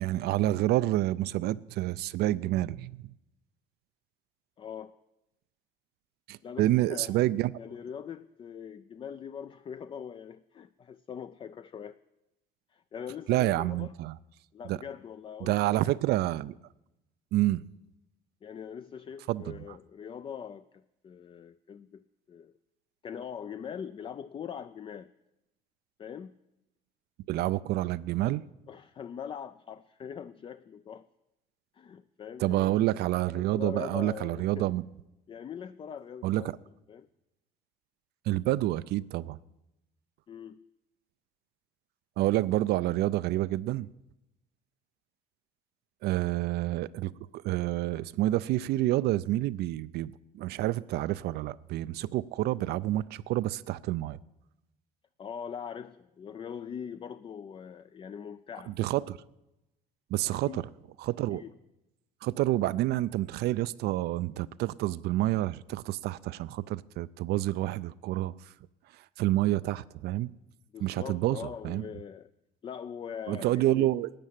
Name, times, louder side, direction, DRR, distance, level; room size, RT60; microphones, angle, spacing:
voice 1, 0.0-3.1 6.3-7.5 13.3-14.2 14.7-14.8 15.4-16.6 17.3-17.6 19.3-19.8 27.3-28.4 32.4-34.8 36.2-36.5 38.3-39.4 42.2-43.9 46.0-54.2 58.7-59.2 60.1-60.7 61.0-61.4 62.2-68.5 68.9-70.3 70.8-71.9 73.3-74.1, right 15 dB, 75° right, 0.4 m, -28 dB
voice 2, 4.6-5.0 6.4-7.2 7.6-12.0 12.7-13.9 14.5-15.8 18.4-22.0 22.3-22.6 23.0-25.1 26.0-26.3 28.7-31.1 31.7-32.8 33.3-34.7 35.3-36.5 36.9-37.1 40.3-40.7 55.2-58.8 60.2-60.6 61.3-61.5 70.7-72.3 72.6-73.9, left 7 dB, 30° left, 0.4 m, -42 dB
12.0 x 8.4 x 7.5 m
cardioid pair, 110°, 17 cm